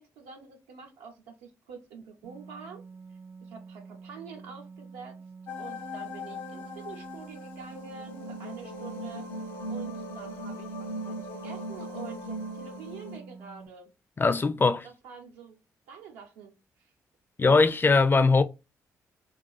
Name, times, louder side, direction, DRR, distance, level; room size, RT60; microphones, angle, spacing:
voice 1, 0.0-2.8 3.4-5.2 5.6-9.3 9.7-13.9 14.6-15.6 15.9-16.9, right 5 dB, 85° right, 0.7 m, -47 dB
sound 1, 2.2-13.7, right 5 dB, 35° right, 0.4 m, -47 dB
sound 2, 5.5-13.2, equal, 80° left, 0.6 m, -39 dB
voice 2, 14.2-14.8 17.4-18.4, left 4 dB, 25° left, 0.4 m, -21 dB
2.4 x 2.3 x 2.3 m
hypercardioid pair, 45°, 8 cm